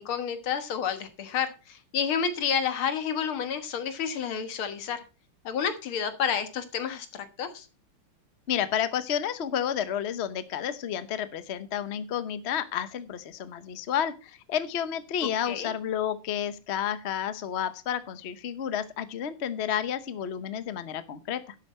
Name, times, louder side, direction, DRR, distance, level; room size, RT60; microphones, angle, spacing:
voice 1, 0.0-5.0 5.5-7.7 15.5-15.7, left 7 dB, 75° left, 10 dB, 2.2 m, -30 dB
voice 2, 8.5-21.5, left 9 dB, 55° left, 13 dB, 0.7 m, -31 dB
11.5 x 8.1 x 4.2 m, 0.32 s
omnidirectional pair, 2.4 m